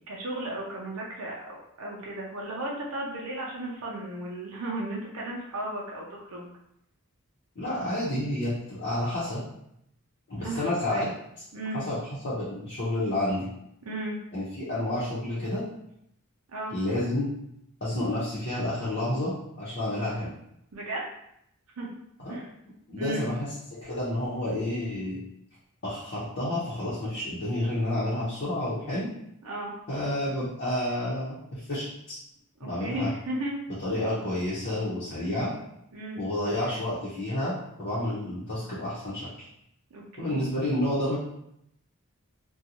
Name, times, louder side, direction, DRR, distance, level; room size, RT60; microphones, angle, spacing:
voice 1, 0.1-6.5 10.4-11.1 11.5-11.8 13.9-14.2 16.5-16.7 20.7-21.0 21.8-21.9 22.3-22.5 23.0-23.3 29.4-29.7 32.6-33.6 35.9-36.2 39.9-40.4, right 1 dB, 75° right, -3 dB, 0.5 m, -35 dB
voice 2, 7.6-9.4 10.3-11.1 11.7-12.0 12.2-13.5 14.3-15.6 16.7-17.3 17.8-20.3 22.2-22.4 22.9-23.5 23.8-25.2 25.8-29.1 29.9-32.2 32.6-33.1 33.8-35.5 36.2-39.5 40.2-41.2, left 1 dB, 50° left, -10 dB, 0.8 m, -30 dB
2.6 x 2.2 x 2.8 m, 0.75 s
head